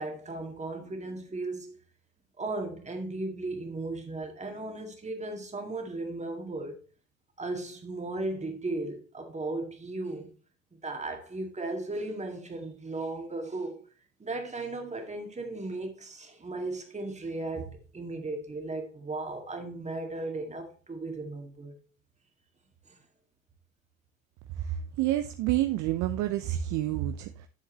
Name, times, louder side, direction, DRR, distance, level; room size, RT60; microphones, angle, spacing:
voice 1, 0.0-1.8 2.4-6.8 7.4-10.3 10.8-13.8 14.2-21.8 22.9-23.0, right 2 dB, 15° right, 2.1 m, -36 dB
voice 2, 24.6-27.5, right 13 dB, 45° right, 0.7 m, -29 dB
10.5 x 7.1 x 3.1 m
figure-of-eight pair, 65°, 40 cm